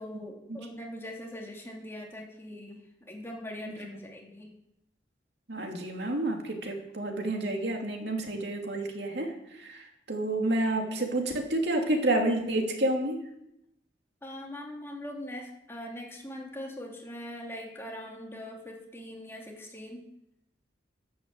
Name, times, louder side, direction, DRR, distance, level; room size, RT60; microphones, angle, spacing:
voice 1, 0.0-4.5 14.2-20.1, left 1 dB, 15° left, -1 dB, 3.2 m, -41 dB
voice 2, 5.5-13.2, right 1 dB, 65° right, 2 dB, 2.9 m, -29 dB
11.5 x 10.5 x 7.9 m, 0.82 s
head